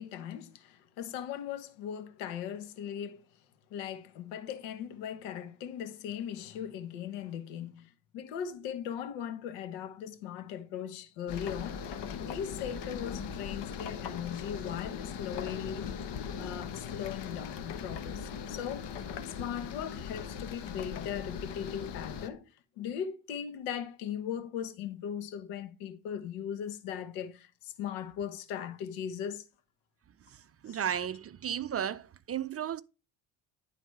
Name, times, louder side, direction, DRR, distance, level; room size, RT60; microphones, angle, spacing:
voice 1, 0.0-3.3 3.7-15.9 16.4-22.5 22.8-29.5 30.7-30.8, left 9 dB, 80° left, 1.2 m, -39 dB
sound 1, 11.3-22.3, left 7 dB, 60° left, 1.4 m, -39 dB
voice 2, 30.3-32.8, right 9 dB, 30° right, 0.5 m, -34 dB
11.0 x 4.0 x 4.7 m
hypercardioid pair, 65°, 48 cm